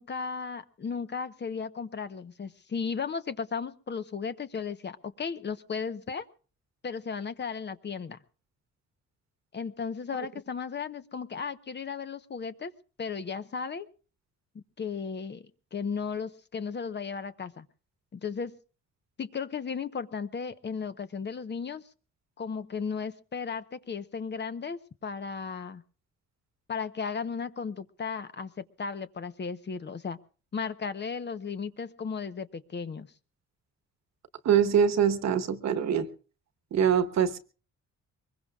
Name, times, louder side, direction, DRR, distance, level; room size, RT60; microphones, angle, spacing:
voice 1, 0.0-6.2 6.8-8.2 9.5-12.7 13.0-13.9 14.5-17.7 18.1-18.5 19.2-21.8 22.4-25.8 26.7-30.2 30.5-33.1, left 5 dB, 35° left, 11 dB, 0.9 m, -35 dB
voice 2, 34.4-36.1 36.7-37.4, right 8 dB, 60° right, 9 dB, 1.2 m, -24 dB
23.0 x 21.5 x 2.4 m, 0.37 s
cardioid pair, 90°, 30 cm